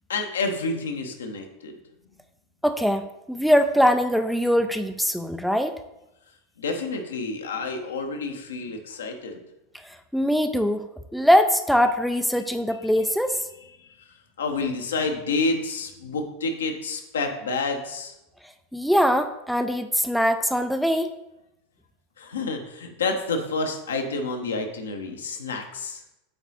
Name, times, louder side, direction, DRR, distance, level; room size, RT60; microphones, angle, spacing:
voice 1, 0.1-1.7 6.6-9.4 13.8-13.9 14.4-18.1 22.2-26.0, left 3 dB, 70° left, 4 dB, 1.0 m, -29 dB
voice 2, 2.6-5.7 9.8-13.4 18.7-21.1, equal, ahead, 7 dB, 0.4 m, -22 dB
7.9 x 4.0 x 4.2 m, 0.91 s
figure-of-eight pair, 85°, 0 cm